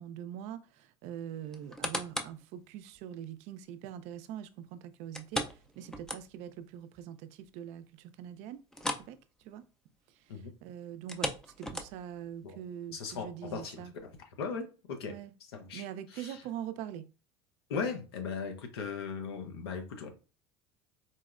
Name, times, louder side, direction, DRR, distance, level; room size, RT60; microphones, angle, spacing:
voice 1, 0.0-8.6 8.9-9.6 10.1-13.9 15.0-15.3 15.7-17.1, right 10 dB, 60° right, 0.4 m, -43 dB
sound 1, 1.5-2.4 2.9-3.0 5.1-6.6 6.9-7.0 7.5-7.6 8.7-9.1 9.4-9.6 10.9-12.2 12.8-12.9, left 1 dB, 5° left, 0.4 m, -37 dB
voice 2, 12.9-14.1 14.4-15.1 15.5-15.8 16.1-16.4 17.7-20.1, left 5 dB, 90° left, 0.7 m, -38 dB
4.0 x 2.0 x 2.4 m
hypercardioid pair, 90°, 13 cm